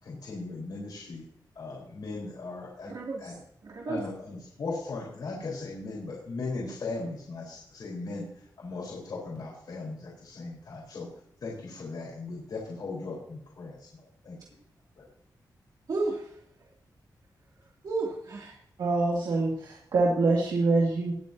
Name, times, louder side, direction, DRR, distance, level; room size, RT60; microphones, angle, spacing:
voice 1, 0.0-1.2 1.5-2.9 3.2-3.4 3.9-8.3 8.6-11.1 11.4-14.4 15.0-15.1, left 3 dB, 65° left, -4 dB, 4.5 m, -38 dB
voice 2, 2.9-3.3 3.6-4.0 15.9-16.7 17.8-18.6, right 3 dB, 60° right, -3 dB, 2.7 m, -33 dB
voice 3, 18.8-21.1, right 3 dB, 85° right, -3 dB, 2.4 m, -25 dB
20.5 x 8.2 x 2.8 m, 0.67 s
wide cardioid pair, 130°, 7 cm